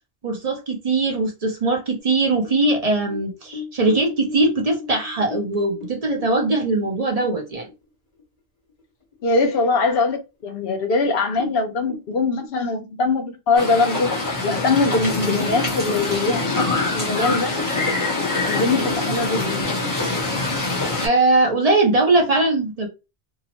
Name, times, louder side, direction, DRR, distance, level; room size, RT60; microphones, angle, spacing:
voice 1, 0.2-7.7 21.0-22.9, right 2 dB, 45° right, 0.6 m, -20 dB
sound 1, 2.0-7.8 8.2-8.3 8.7-9.2 9.6-9.7 10.4-10.5 10.8-10.9 11.3-12.5, left 3 dB, 40° left, 1.4 m, -37 dB
voice 2, 9.2-14.1 14.4-17.6 18.4-19.6, left 3 dB, 65° left, 0.8 m, -22 dB
sound 2, 13.6-21.1, left 2 dB, 20° left, 0.8 m, -24 dB
2.8 x 2.0 x 2.8 m
omnidirectional pair, 1.1 m